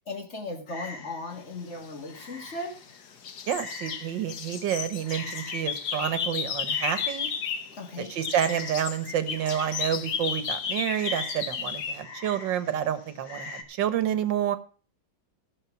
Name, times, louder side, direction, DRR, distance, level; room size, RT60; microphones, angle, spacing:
voice 1, 0.1-2.8 7.7-8.1, left 2 dB, 40° left, 5 dB, 1.9 m, -37 dB
Frog, 0.7-13.6, left 3 dB, 90° left, 2.4 m, -45 dB
sound 1, 2.1-2.9 3.2-7.8 8.0-12.0, left 7 dB, 65° left, 1.6 m, -33 dB
voice 2, 3.5-7.3 8.0-14.6, right 9 dB, 80° right, 12 dB, 1.8 m, -29 dB
14.5 x 6.7 x 5.8 m, 0.40 s
omnidirectional pair, 2.0 m